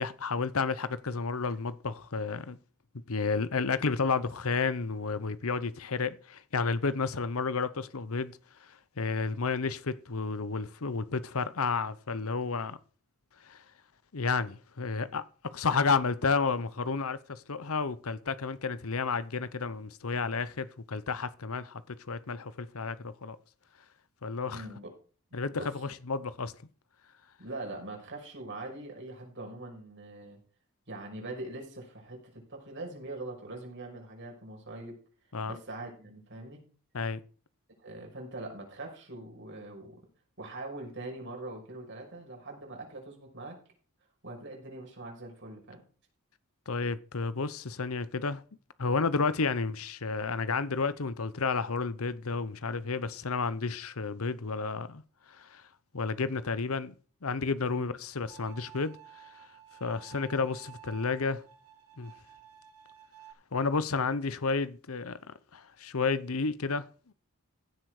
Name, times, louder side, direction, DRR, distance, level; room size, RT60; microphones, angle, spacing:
voice 1, 0.0-2.6 3.1-8.3 9.0-12.8 13.5-13.6 14.1-23.4 24.2-24.7 25.3-26.5 35.3-35.5 36.9-37.2 46.7-48.4 48.8-55.0 55.3-55.6 55.9-56.9 57.2-59.4 59.8-61.4 62.0-62.1 63.5-67.1, left 4 dB, 70° left, 0.9 m, -31 dB
voice 2, 24.5-24.9 25.5-25.9 27.4-30.4 30.9-35.0 35.5-36.6 37.8-40.0 40.4-43.6 44.2-45.8 57.7-57.9, right 2 dB, 55° right, 6.0 m, -42 dB
Bowed string instrument, 58.3-63.3, right 11 dB, 80° right, 3.3 m, -53 dB
16.0 x 8.0 x 4.9 m
head